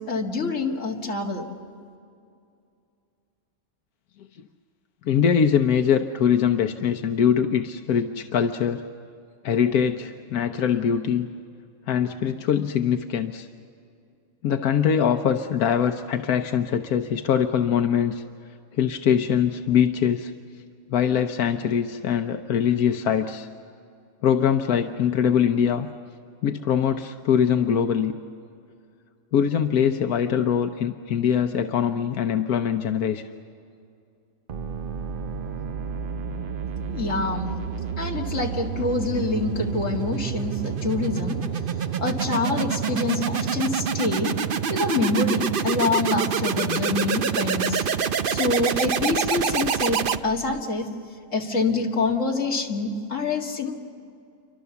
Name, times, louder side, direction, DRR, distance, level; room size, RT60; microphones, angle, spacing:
voice 1, 0.1-1.5 36.9-37.5 38.0-41.4 42.0-44.3 44.7-47.9 48.2-50.9 51.3-53.7, left 3 dB, 55° left, 1 dB, 2.5 m, -26 dB
voice 2, 5.0-8.8 9.4-11.3 11.9-13.5 14.4-18.2 18.7-20.3 20.9-23.5 24.2-25.9 26.4-28.1 29.3-33.2, left 8 dB, 85° left, 6 dB, 1.3 m, -22 dB
sound 1, 34.5-50.6, right 7 dB, 50° right, 0.7 m, -27 dB
28.5 x 24.5 x 7.0 m, 2.4 s
omnidirectional pair, 1.5 m